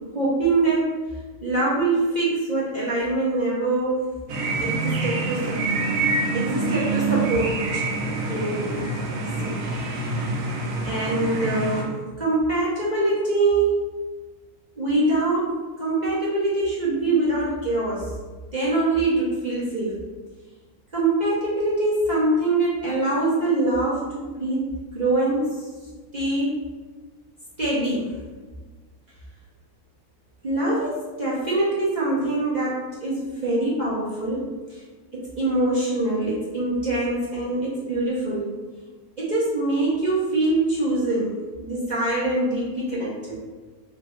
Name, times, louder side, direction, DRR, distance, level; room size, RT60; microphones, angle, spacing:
voice 1, 0.1-1.0 1.4-4.1 4.6-5.6 6.3-8.7 9.4-9.6 9.9-10.1 10.8-13.9 14.8-18.1 18.5-20.0 20.9-24.7 24.9-25.7 26.1-26.6 27.6-28.1 30.4-34.8 35.1-38.5 39.2-41.3 41.6-43.4, right 2 dB, 40° right, -8 dB, 0.6 m, -24 dB
sound 1, 4.3-11.8, right 3 dB, 65° right, 1.0 m, -26 dB
3.1 x 2.4 x 4.2 m, 1.4 s
omnidirectional pair, 1.7 m